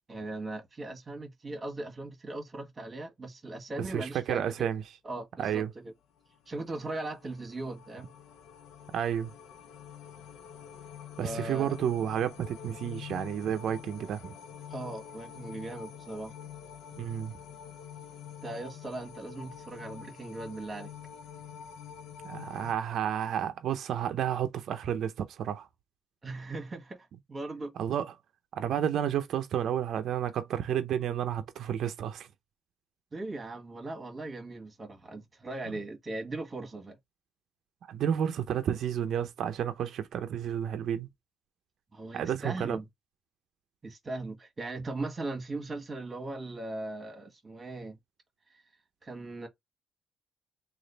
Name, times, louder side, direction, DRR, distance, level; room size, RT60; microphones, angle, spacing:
voice 1, 0.1-4.7 5.0-5.9 6.5-8.1 11.2-11.8 14.7-16.3 18.4-20.9 26.2-27.7 33.1-37.0 41.9-42.8 43.8-48.0 49.0-49.5, right 2 dB, 30° right, 1.5 m, -39 dB
voice 2, 3.8-4.8 5.4-5.7 8.9-9.3 11.2-14.4 17.0-17.4 22.2-25.7 27.8-28.1 28.6-32.3 37.9-41.1 42.1-42.8, right 9 dB, 70° right, 0.5 m, -31 dB
sound 1, 6.5-22.7, left 8 dB, 80° left, 0.8 m, -46 dB
3.2 x 2.5 x 3.8 m
cardioid pair, 90°, 0 cm